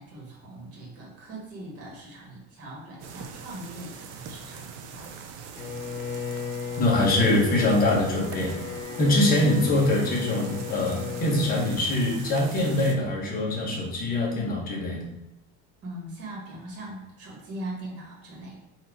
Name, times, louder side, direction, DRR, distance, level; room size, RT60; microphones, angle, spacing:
voice 1, 0.0-5.1 9.3-9.6 15.8-18.6, right 1 dB, 40° right, -4 dB, 1.4 m, -40 dB
sound 1, 3.0-12.9, right 6 dB, 55° right, 0.6 m, -42 dB
Bowed string instrument, 5.6-11.8, left 6 dB, 85° left, 0.7 m, -35 dB
voice 2, 6.8-8.5 9.0-15.0, left 1 dB, 25° left, -3 dB, 1.0 m, -23 dB
4.2 x 2.6 x 4.5 m, 0.90 s
cardioid pair, 165°, 37 cm